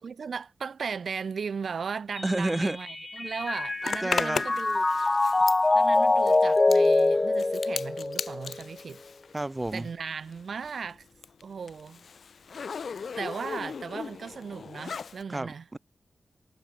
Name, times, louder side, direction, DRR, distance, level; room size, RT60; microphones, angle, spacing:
voice 1, 0.0-4.8 5.7-9.0 9.7-11.0 11.4-12.0 13.2-15.7, right 6 dB, 60° right, 4.2 m, -37 dB
Mallet percussion, 2.2-8.6, left 2 dB, 25° left, 4.6 m, -24 dB
voice 2, 2.2-2.8 4.0-4.4 9.3-9.9 15.3-15.8, right 2 dB, 15° right, 4.6 m, -30 dB
Zipper (clothing), 3.8-10.0 10.3-15.2, left 6 dB, 65° left, 3.4 m, -37 dB
wide cardioid pair, 165°, 0 cm